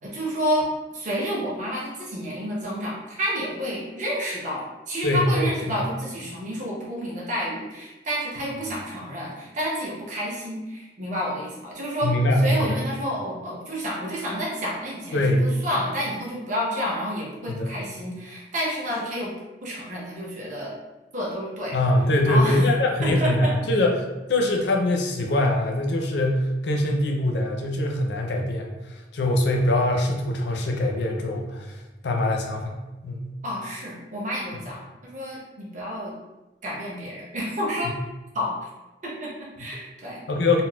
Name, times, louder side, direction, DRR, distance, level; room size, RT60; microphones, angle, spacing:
voice 1, 0.0-12.1 12.4-19.3 19.6-20.7 21.1-21.8 22.2-22.7 23.0-23.5 33.4-36.2 36.6-37.9 38.3-38.6 39.0-40.2, equal, 45° right, -5 dB, 0.8 m, -30 dB
voice 2, 5.0-5.8 12.0-12.6 15.1-15.5 17.5-17.7 21.7-23.9 24.3-31.8 32.0-33.4 40.3-40.6, left 1 dB, 65° left, 1 dB, 0.5 m, -23 dB
4.0 x 2.0 x 2.2 m, 1.1 s
head